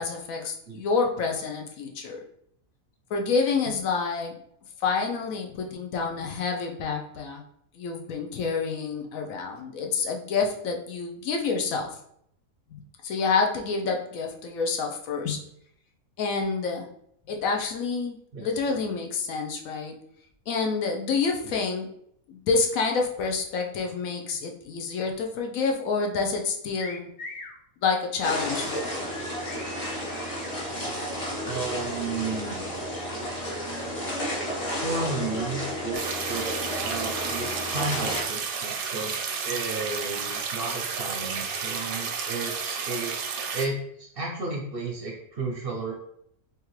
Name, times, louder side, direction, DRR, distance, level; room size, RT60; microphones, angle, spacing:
voice 1, 0.0-2.2 3.1-4.4 4.8-7.4 7.8-11.9 12.7-15.4 16.2-16.9 17.3-20.0 20.5-21.9 22.3-27.1 27.8-29.1, left 4 dB, 80° left, 2 dB, 1.0 m, -28 dB
voice 2, 18.3-18.9 31.4-32.6 34.8-36.5 36.8-39.2 39.4-43.1 43.5-45.9, right 3 dB, 55° right, 0 dB, 0.7 m, -33 dB
sound 1, 26.8-27.6 29.1-30.6, left 2 dB, 60° left, 0.9 m, -41 dB
sound 2, 28.2-38.2, equal, 30° left, 0.9 m, -32 dB
sound 3, 35.9-43.7, right 6 dB, 85° right, 1.1 m, -32 dB
3.6 x 3.0 x 3.0 m, 0.70 s
omnidirectional pair, 1.4 m